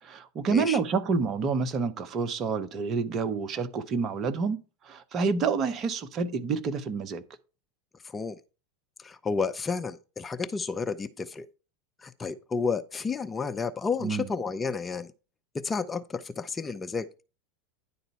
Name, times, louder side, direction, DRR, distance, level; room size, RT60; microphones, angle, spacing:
voice 1, 0.0-4.6 4.9-7.2 14.0-14.2, right 5 dB, 35° right, 0.9 m, -28 dB
voice 2, 8.0-8.4 9.0-11.5 12.0-15.1 15.5-17.2, left 5 dB, 20° left, 0.5 m, -31 dB
10.0 x 4.0 x 5.5 m
figure-of-eight pair, 85°, 0 cm